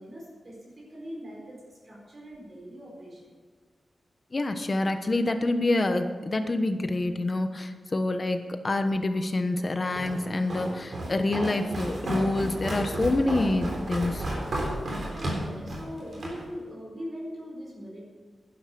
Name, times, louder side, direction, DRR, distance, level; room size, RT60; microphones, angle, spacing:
voice 1, 0.0-3.3 15.1-18.0, equal, 40° right, -4 dB, 4.6 m, -41 dB
voice 2, 4.3-14.2, left 2 dB, 30° left, 7 dB, 1.1 m, -27 dB
Walk footsteps, 10.0-16.4, right 1 dB, 55° right, 3.6 m, -32 dB
11.5 x 11.0 x 6.8 m, 1.5 s
wide cardioid pair, 150°, 0 cm